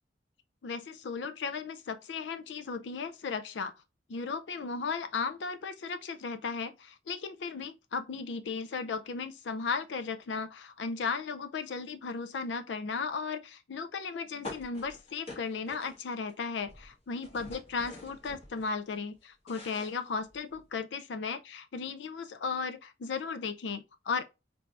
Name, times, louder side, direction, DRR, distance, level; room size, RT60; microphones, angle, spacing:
voice 1, 0.6-3.7 4.1-24.2, left 5 dB, 90° left, 0.4 m, -36 dB
sound 1, 14.4-16.3 16.6-18.7 19.1-20.7, left 2 dB, 35° left, 1.5 m, -46 dB
4.5 x 2.6 x 3.2 m
head